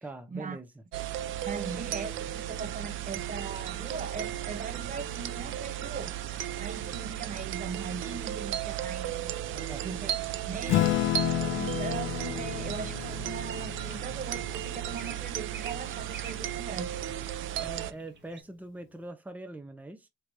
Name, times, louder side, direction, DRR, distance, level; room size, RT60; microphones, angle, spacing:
voice 1, 0.0-0.8 9.5-9.9 17.6-20.1, right 2 dB, 10° right, 0.8 m, -43 dB
sound 1, 0.9-17.9, right 11 dB, 80° right, 0.5 m, -35 dB
voice 2, 1.5-9.3 9.8-16.9, right 5 dB, 40° right, 0.9 m, -39 dB
Acoustic guitar / Strum, 10.7-15.5, left 15 dB, 80° left, 0.4 m, -31 dB
sound 2, 12.7-18.4, right 6 dB, 65° right, 1.1 m, -50 dB
4.7 x 3.0 x 2.7 m
cardioid pair, 90°, 20 cm